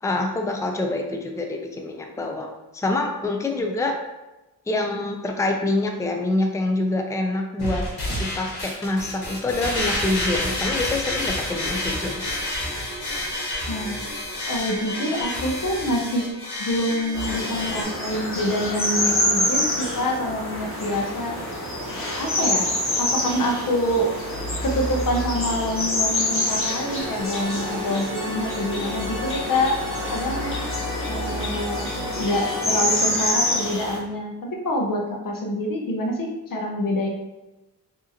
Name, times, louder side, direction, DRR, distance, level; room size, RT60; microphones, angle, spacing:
voice 1, 0.0-4.0 4.7-7.9 8.2-12.2, left 2 dB, 10° left, 2 dB, 0.4 m, -26 dB
sound 1, 7.6-17.8, left 1 dB, 75° left, 1.4 m, -29 dB
voice 2, 13.7-14.0 14.5-16.3 16.6-21.4 22.0-22.7 23.0-24.1 24.6-29.8 30.1-30.5 31.1-31.9 32.2-37.1, left 1 dB, 55° left, 1 dB, 0.8 m, -26 dB
sound 2, 17.1-34.0, left 1 dB, 35° left, 1.4 m, -27 dB
sound 3, 26.9-33.0, left 1 dB, 50° right, 1.2 m, -33 dB
4.6 x 2.8 x 2.9 m, 1.0 s
cardioid pair, 75°, 39 cm